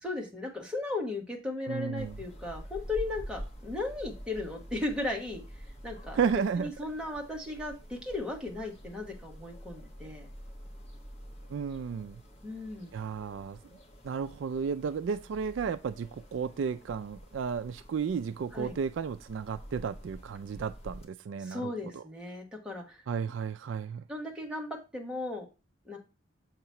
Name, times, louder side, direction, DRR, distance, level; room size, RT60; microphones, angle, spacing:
voice 1, 0.0-6.2 6.6-10.3 12.4-13.0 18.5-18.7 21.4-23.0 24.1-25.4 25.8-26.0, left 2 dB, 5° right, 1.2 m, -36 dB
voice 2, 1.7-2.2 6.1-6.7 11.5-12.2 12.9-13.6 14.0-22.0 23.1-24.0, right 6 dB, 65° right, 0.3 m, -33 dB
sound 1, 2.0-21.1, equal, 30° left, 1.0 m, -47 dB
7.2 x 3.0 x 5.5 m
head